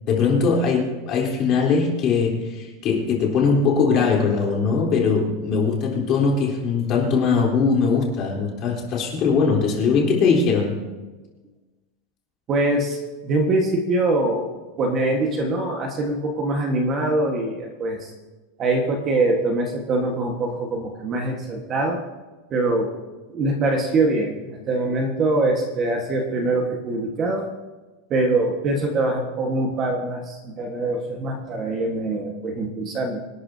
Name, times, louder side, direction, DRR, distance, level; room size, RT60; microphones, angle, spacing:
voice 1, 0.1-10.8, left 5 dB, 30° left, -2 dB, 3.6 m, -21 dB
voice 2, 12.5-13.0 13.2-14.5 14.8-18.1 18.6-22.0 22.5-22.9 23.3-27.5 28.1-33.2, right 2 dB, 25° right, 2 dB, 1.4 m, -23 dB
25.5 x 12.5 x 2.8 m, 1.2 s
supercardioid pair, 175°, 0 cm